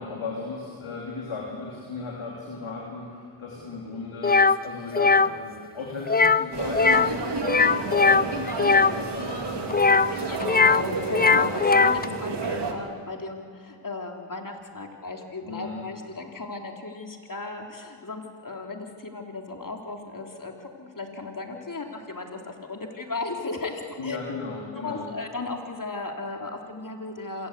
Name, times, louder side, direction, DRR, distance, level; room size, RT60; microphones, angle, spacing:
voice 1, 0.0-10.6 11.3-11.5 12.0-12.2 15.4-15.8 24.0-25.1, left 3 dB, 85° left, -3 dB, 3.5 m, -36 dB
sound 1, 4.2-4.6 4.9-5.3 6.1-6.5 6.7-7.1 7.4-8.9 9.7-10.8 11.1-12.1, left 4 dB, 20° left, 0.5 m, -19 dB
sound 2, 6.5-12.7, right 3 dB, 60° right, 2.9 m, -31 dB
voice 2, 10.1-24.2 24.7-27.5, left 3 dB, 40° left, 2 dB, 3.4 m, -36 dB
27.0 x 18.0 x 8.3 m, 2.2 s
cardioid pair, 45°, 48 cm